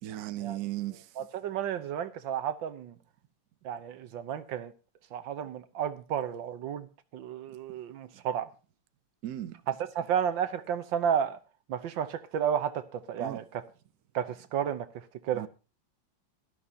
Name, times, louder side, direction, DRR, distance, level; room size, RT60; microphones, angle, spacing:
voice 1, 0.0-1.2 9.2-9.6 13.2-13.4 15.3-15.5, right 14 dB, 60° right, 1.1 m, -36 dB
voice 2, 1.2-3.0 3.6-4.7 5.1-6.9 7.1-8.5 9.7-11.4 11.7-13.6 14.1-14.9 15.2-15.5, right 8 dB, 85° right, 1.7 m, -32 dB
16.5 x 12.5 x 2.8 m
omnidirectional pair, 2.0 m